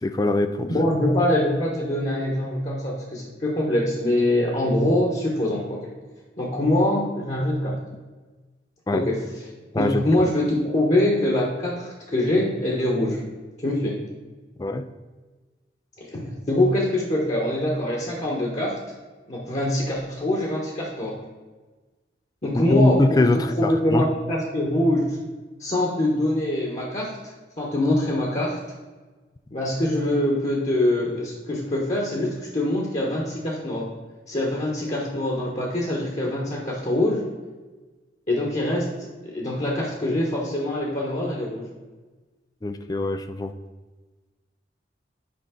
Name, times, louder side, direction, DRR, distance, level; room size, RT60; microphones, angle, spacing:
voice 1, 0.0-0.7 8.9-9.0 9.7-10.1 14.6-14.9 22.5-24.1 42.6-43.5, left 2 dB, 20° left, 9 dB, 0.3 m, -22 dB
voice 2, 0.7-5.9 6.4-7.8 8.9-9.2 9.8-13.2 13.6-14.0 16.0-18.8 19.3-21.1 22.4-23.2 23.6-25.2 25.6-27.1 27.6-28.6 29.5-33.8 34.3-37.3 38.3-41.7, left 1 dB, 40° left, -2 dB, 1.3 m, -24 dB
8.5 x 5.3 x 3.8 m, 1.3 s
head